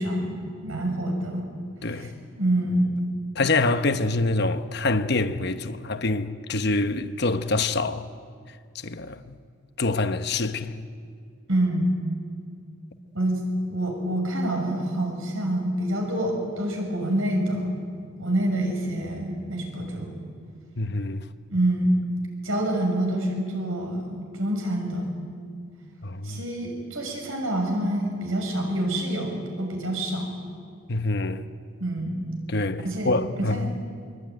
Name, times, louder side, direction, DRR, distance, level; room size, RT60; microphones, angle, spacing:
voice 1, 0.0-1.4 1.9-2.9 11.5-11.9 13.1-13.4 13.7-17.7 18.2-20.1 21.5-22.0 22.4-25.1 26.2-30.4 31.8-32.2 32.8-33.7, right 1 dB, 90° right, 6.6 m, -27 dB
voice 2, 1.8-2.2 3.3-8.1 8.8-9.4 9.8-10.9 20.8-21.2 26.0-26.4 30.9-31.4 32.5-33.6, left 2 dB, 55° left, 1.0 m, -26 dB
23.5 x 23.0 x 9.3 m
head